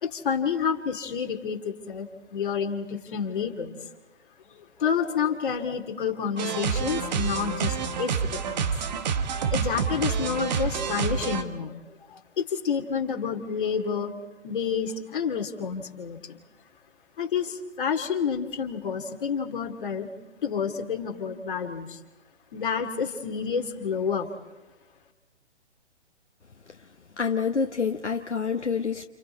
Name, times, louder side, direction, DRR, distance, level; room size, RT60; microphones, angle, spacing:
voice 1, 0.0-2.1 2.3-3.8 4.5-8.7 9.5-11.8 12.1-14.1 14.4-16.4 17.2-20.1 20.4-22.0 22.5-24.3, left 6 dB, 45° left, 4 dB, 2.5 m, -29 dB
sound 1, 6.4-11.4, right 6 dB, 40° right, 1.4 m, -28 dB
voice 2, 27.2-29.1, left 5 dB, 75° left, 5 dB, 1.1 m, -27 dB
30.0 x 29.5 x 4.3 m, 1.2 s
figure-of-eight pair, 125°, 35 cm